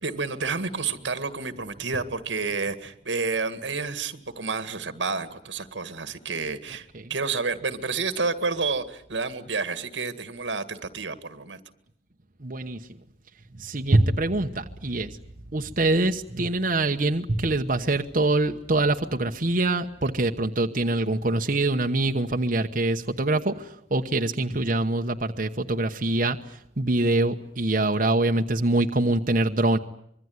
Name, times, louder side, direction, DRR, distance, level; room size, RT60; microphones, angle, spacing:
voice 1, 0.0-11.6, right 4 dB, 90° right, 11 dB, 2.0 m, -30 dB
voice 2, 12.4-12.8 13.6-15.1 15.5-26.4 26.8-29.8, right 2 dB, 45° right, 4 dB, 1.1 m, -24 dB
25.5 x 22.5 x 9.6 m, 0.73 s
head